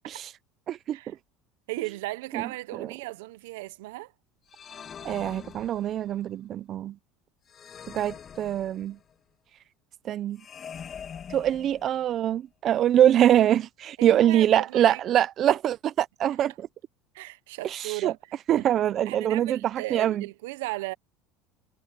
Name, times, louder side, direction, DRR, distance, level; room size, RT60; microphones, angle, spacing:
voice 1, 1.7-4.1 14.0-15.0 17.1-18.7 19.0-20.9, right 20 dB, 90° right, 0.8 m, -36 dB
sound 1, 4.5-6.2 7.5-9.1 10.4-12.2, left 7 dB, 30° left, 2.0 m, -44 dB
voice 2, 5.0-6.9 7.9-9.0 10.0-10.4 11.3-16.7 17.6-18.1 18.5-20.2, right 11 dB, 40° right, 0.5 m, -24 dB
supercardioid pair, 130°, 0 cm